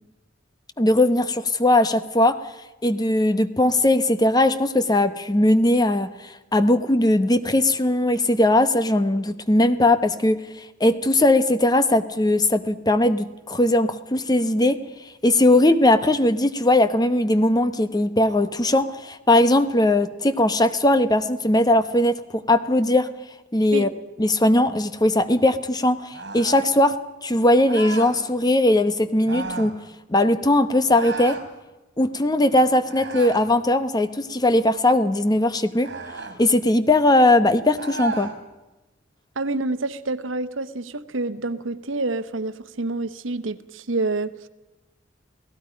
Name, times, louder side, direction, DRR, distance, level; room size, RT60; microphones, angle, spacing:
voice 1, 0.8-2.4 2.8-6.1 6.5-10.4 10.8-14.8 15.2-23.1 23.5-23.9 24.2-26.9 27.2-29.7 30.1-31.4 32.0-35.9 36.4-38.3, left 1 dB, 20° left, 12 dB, 0.9 m, -19 dB
sound 1, 26.1-26.7 27.7-28.2 29.2-29.8 30.9-31.5 32.9-33.5 35.8-36.4 37.8-38.4, right 3 dB, 65° right, 3.3 m, -33 dB
voice 2, 39.4-44.5, right 2 dB, 90° right, 12 dB, 1.0 m, -28 dB
28.5 x 17.5 x 5.2 m, 1.1 s
head